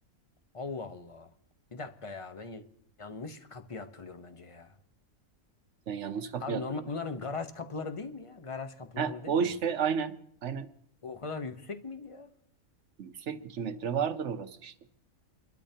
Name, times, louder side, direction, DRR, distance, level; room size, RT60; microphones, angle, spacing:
voice 1, 0.5-1.3 1.7-2.6 3.0-4.8 6.4-9.5 11.0-12.3, left 4 dB, 25° left, 0.8 m, -39 dB
voice 2, 5.9-6.6 9.0-10.2 10.4-10.7 13.0-14.7, right 7 dB, 60° right, 1.1 m, -31 dB
29.5 x 12.0 x 2.8 m
omnidirectional pair, 1.4 m